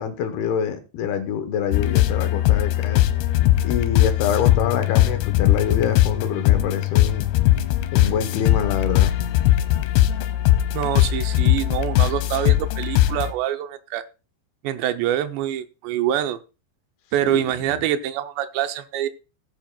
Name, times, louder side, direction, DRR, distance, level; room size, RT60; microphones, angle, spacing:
voice 1, 0.0-3.1 3.6-7.2 7.9-9.1 17.2-17.4, left 8 dB, 75° left, 2.7 m, -26 dB
sound 1, 1.7-13.3, left 14 dB, 90° left, 3.2 m, -19 dB
voice 2, 10.7-14.0 14.6-16.4 17.1-19.1, right 11 dB, 80° right, 2.8 m, -25 dB
17.5 x 8.7 x 2.2 m
omnidirectional pair, 5.1 m